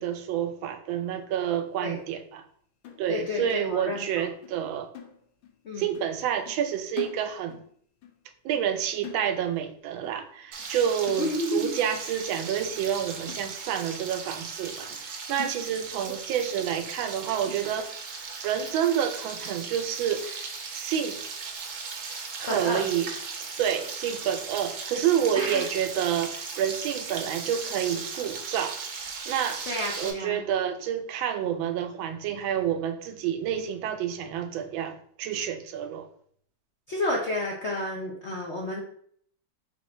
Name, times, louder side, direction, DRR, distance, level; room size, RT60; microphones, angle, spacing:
voice 1, 0.0-2.4 3.0-4.9 5.8-7.6 8.4-17.9 18.4-21.2 22.4-23.1 23.6-28.8 29.3-29.6 30.0-36.1, right 9 dB, 90° right, 1.4 m, -29 dB
sound 1, 2.8-4.2 4.4-4.7 4.9-5.6 5.9-6.2 6.5-7.7 8.0-8.2 8.5-9.7 10.0-10.3 10.6-10.8 11.1-11.7 12.2-12.3 12.7-12.9 13.3-14.0 14.4-14.5 14.9-15.1 15.4-16.1 16.4-16.5 17.0-17.1 17.5-18.0 18.5-18.6 19.0-19.2, left 9 dB, 90° left, 1.6 m, -45 dB
voice 2, 3.1-4.3 5.6-6.0 11.2-11.7 16.1-16.2 22.5-22.8 25.3-25.7 29.7-30.4 36.9-38.8, left 1 dB, 70° left, 0.6 m, -31 dB
Frying (food), 10.5-30.1, right 5 dB, 65° right, 0.8 m, -37 dB
4.2 x 2.9 x 4.2 m
omnidirectional pair, 2.1 m